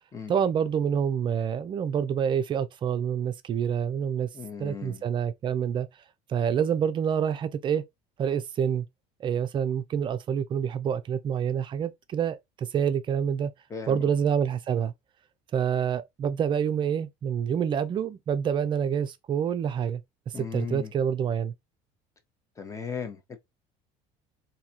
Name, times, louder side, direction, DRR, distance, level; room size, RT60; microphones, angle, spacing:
voice 1, 0.3-4.3 4.6-5.9 6.3-7.8 8.2-8.8 9.2-13.5 13.9-14.9 15.5-20.0 20.4-21.5, right 8 dB, 30° right, 0.4 m, -27 dB
voice 2, 4.3-5.0 13.7-14.1 20.3-20.9 22.6-23.4, left 6 dB, 20° left, 0.9 m, -37 dB
3.9 x 2.7 x 2.8 m
cardioid pair, 140°, 16 cm